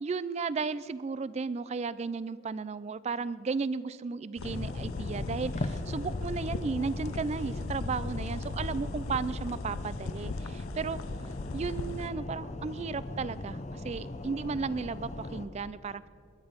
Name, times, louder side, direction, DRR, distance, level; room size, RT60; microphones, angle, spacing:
voice 1, 0.0-11.0 11.5-16.1, right 4 dB, 30° right, 18 dB, 0.3 m, -34 dB
sound 1, 4.4-12.1, left 4 dB, 90° left, 0.6 m, -39 dB
sound 2, 4.4-15.5, left 2 dB, 35° left, 0.7 m, -39 dB
21.0 x 11.0 x 5.1 m, 2.3 s
head